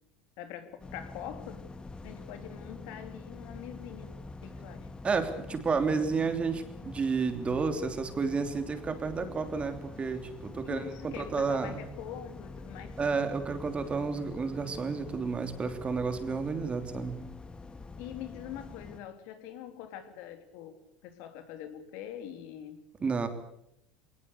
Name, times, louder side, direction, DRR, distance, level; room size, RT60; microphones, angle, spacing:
voice 1, 0.4-1.7 2.0-4.9 10.6-13.0 18.0-22.8, left 10 dB, 65° left, 8 dB, 3.1 m, -44 dB
sound 1, 0.8-19.0, left 3 dB, 20° left, 1.9 m, -46 dB
voice 2, 5.0-11.8 13.0-17.2 23.0-23.3, right 4 dB, 25° right, 7 dB, 3.2 m, -31 dB
21.0 x 19.0 x 8.3 m, 0.76 s
supercardioid pair, 105°, 5 cm